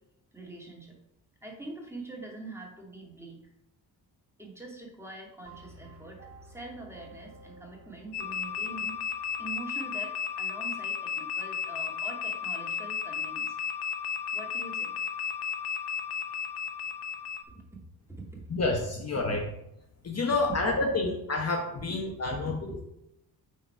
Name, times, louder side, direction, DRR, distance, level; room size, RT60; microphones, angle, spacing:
voice 1, 0.3-0.9 1.4-3.4 4.4-9.0 9.4-13.6 14.3-15.0 17.5-18.4 22.3-22.4, right 2 dB, 5° right, -1 dB, 2.3 m, -44 dB
sound 1, 5.5-9.7, right 1 dB, 35° right, 1.7 m, -52 dB
sound 2, 8.1-17.4, left 7 dB, 85° left, 1.0 m, -34 dB
voice 2, 18.5-19.4 20.0-22.9, left 3 dB, 40° left, 2 dB, 1.1 m, -29 dB
9.2 x 4.2 x 4.6 m, 0.82 s
cardioid pair, 85°, 41 cm